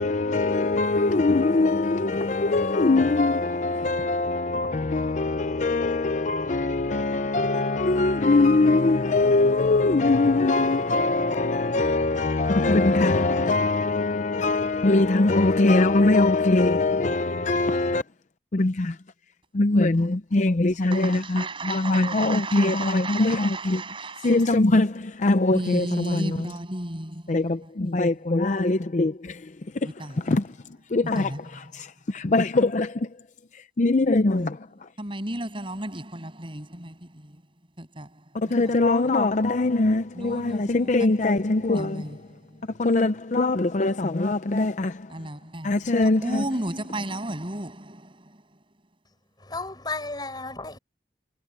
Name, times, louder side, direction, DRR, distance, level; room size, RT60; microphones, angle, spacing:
voice 1, 0.0-18.0 18.5-19.0 19.5-23.8 24.2-26.5 27.3-29.9 30.2-30.6 30.9-33.1 33.5-34.9 38.3-42.0 42.8-45.1 45.6-46.4, left 2 dB, 45° left, 0.6 m, -22 dB
voice 2, 20.8-24.5 25.5-28.1 29.8-30.2 31.1-31.7 35.0-37.4 37.8-38.7 40.1-40.9 41.2-41.3 41.6-42.7 45.1-48.6, right 1 dB, 30° right, 7.7 m, -34 dB
voice 3, 49.4-50.8, left 3 dB, 25° left, 7.5 m, -33 dB
head